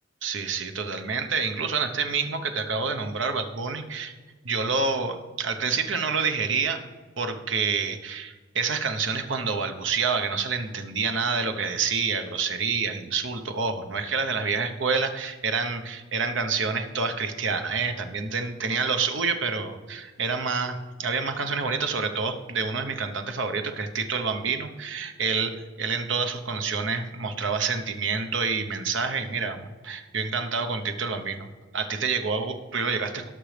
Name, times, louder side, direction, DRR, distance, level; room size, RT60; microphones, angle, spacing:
voice 1, 0.2-4.1 4.4-6.8 7.2-33.3, right 5 dB, 75° right, 7 dB, 0.9 m, -28 dB
18.0 x 6.1 x 3.4 m, 1.3 s
head